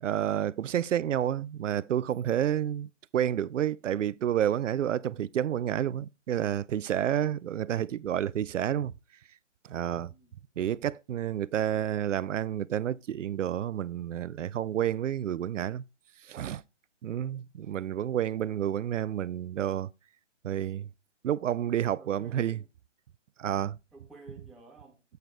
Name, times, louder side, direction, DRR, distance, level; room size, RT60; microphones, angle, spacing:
voice 1, 0.0-8.9 9.7-10.1 10.6-15.8 16.3-16.6 17.0-19.9 20.4-20.9 21.2-22.6 23.4-23.8, right 10 dB, 80° right, 0.5 m, -30 dB
voice 2, 10.0-10.3 22.0-22.7 23.9-25.0, right 3 dB, ahead, 0.3 m, -53 dB
7.9 x 6.9 x 3.2 m
hypercardioid pair, 165°, 37 cm